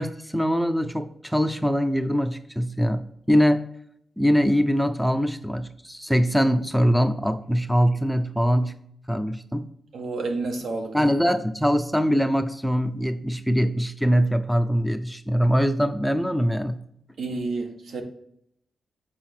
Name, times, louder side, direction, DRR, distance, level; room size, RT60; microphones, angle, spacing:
voice 1, 0.0-3.6 4.2-8.8 9.1-9.7 10.9-16.8, equal, ahead, 0.4 m, -23 dB
voice 2, 9.9-10.9 17.2-18.0, right 3 dB, 80° right, 1.5 m, -29 dB
7.6 x 5.0 x 4.3 m
wide cardioid pair, 170°, 0 cm